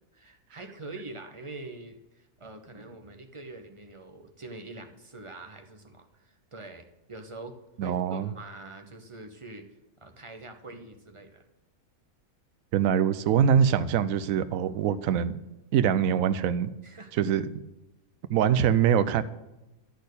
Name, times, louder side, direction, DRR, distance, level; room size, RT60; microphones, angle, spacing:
voice 1, 0.1-7.5 7.8-9.7 10.0-11.4 16.8-17.1, right 2 dB, 25° right, 5 dB, 0.8 m, -44 dB
voice 2, 7.8-8.3 12.7-15.3 15.7-16.7 17.1-17.5 18.3-19.2, right 8 dB, 75° right, 12 dB, 1.0 m, -23 dB
12.5 x 4.4 x 8.2 m, 0.97 s
omnidirectional pair, 1.5 m